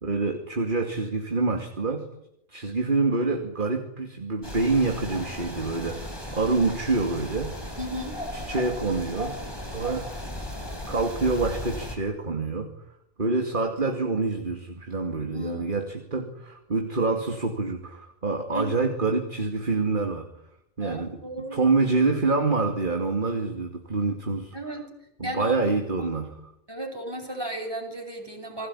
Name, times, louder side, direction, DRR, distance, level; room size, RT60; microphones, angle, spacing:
voice 1, 0.0-2.1 2.5-7.5 8.3-9.4 9.7-10.1 10.9-12.7 13.2-20.3 20.8-21.2 21.5-24.5 25.2-26.3, right 3 dB, 35° right, 4 dB, 2.6 m, -26 dB
sound 1, 4.4-12.0, left 1 dB, 15° left, 4.7 m, -36 dB
voice 2, 7.8-8.2 10.2-10.3 15.2-15.8 18.5-18.7 20.8-21.6 24.5-24.8 25.2-25.7 26.0-26.1 26.7-28.7, right 1 dB, 15° right, 2 dB, 7.0 m, -34 dB
29.0 x 21.0 x 9.9 m, 0.82 s
omnidirectional pair, 1.5 m